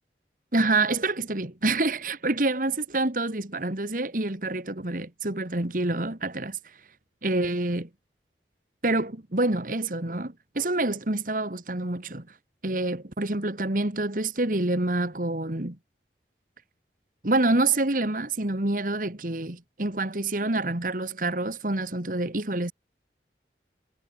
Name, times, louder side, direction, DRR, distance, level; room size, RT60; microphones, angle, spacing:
voice 1, 0.5-6.6 7.2-7.9 8.8-12.3 12.6-15.8 17.2-22.7, right 2 dB, 50° right, 2.0 m, -27 dB
head